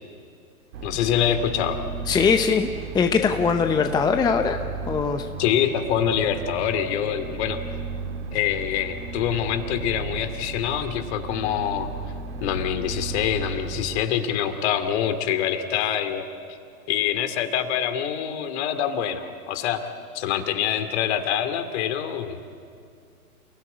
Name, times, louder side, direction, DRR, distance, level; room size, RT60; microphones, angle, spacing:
sound 1, 0.7-14.0, right 4 dB, 50° right, 2.6 m, -35 dB
voice 1, 0.8-1.8 5.4-7.6 8.3-11.9 12.4-16.3 16.9-19.9 20.1-22.4, left 9 dB, 45° left, 9 dB, 2.5 m, -25 dB
voice 2, 2.1-2.7 2.9-4.6 4.9-5.3, left 5 dB, 10° left, 7 dB, 0.7 m, -21 dB
29.5 x 16.5 x 9.5 m, 2.2 s
hypercardioid pair, 115°, 45 cm